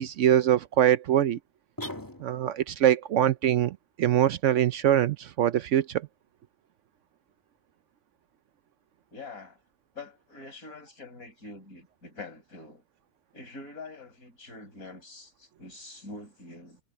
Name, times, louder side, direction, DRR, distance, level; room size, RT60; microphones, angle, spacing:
voice 1, 0.0-1.4 2.2-6.0, right 11 dB, 65° right, 0.8 m, -23 dB
sound 1, 1.8-2.7, left 1 dB, 15° left, 1.9 m, -39 dB
voice 2, 9.1-9.6 9.9-12.8 13.3-16.8, left 3 dB, 75° left, 6.4 m, -45 dB
omnidirectional pair, 1.5 m